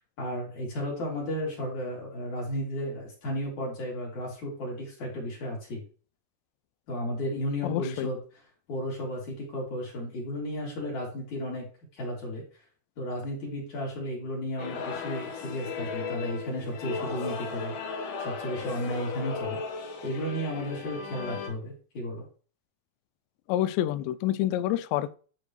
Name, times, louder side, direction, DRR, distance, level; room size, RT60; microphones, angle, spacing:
voice 1, 0.2-5.8 6.9-8.2 8.7-11.7 12.0-12.4 13.0-17.7 18.2-19.6 20.0-22.3, equal, 45° left, 4.3 m, -33 dB
voice 2, 7.6-8.1 23.5-25.1, left 13 dB, 85° left, 2.8 m, -28 dB
sound 1, 14.6-21.5, left 5 dB, 65° left, 3.2 m, -36 dB
11.5 x 5.2 x 3.2 m
omnidirectional pair, 5.1 m